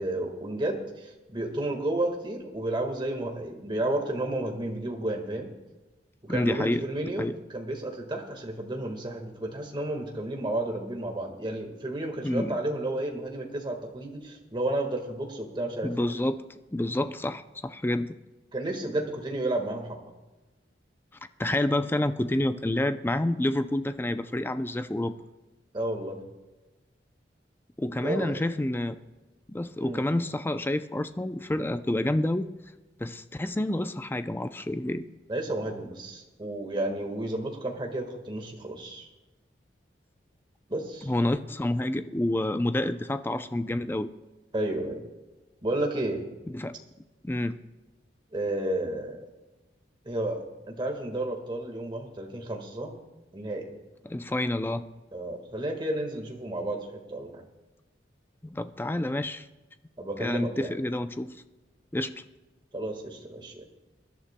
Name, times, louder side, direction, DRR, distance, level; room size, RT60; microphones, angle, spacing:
voice 1, 0.0-5.5 6.2-15.9 18.5-20.1 25.7-26.2 28.0-28.4 29.8-30.1 35.3-39.1 40.7-41.1 44.5-45.0 45.6-46.3 48.3-49.3 50.0-52.9 53.3-53.7 55.1-57.4 60.0-60.7 62.7-63.6, right 1 dB, 25° right, 2 dB, 1.6 m, -32 dB
voice 2, 6.3-7.3 12.2-12.6 15.8-16.4 16.7-18.1 21.4-25.1 27.8-29.0 29.5-32.5 33.0-35.0 41.1-44.1 46.5-46.7 47.2-47.6 54.0-54.8 58.4-59.4 60.2-61.4 61.9-62.2, left 1 dB, 10° left, 11 dB, 0.4 m, -28 dB
24.0 x 11.5 x 2.2 m, 1.1 s
head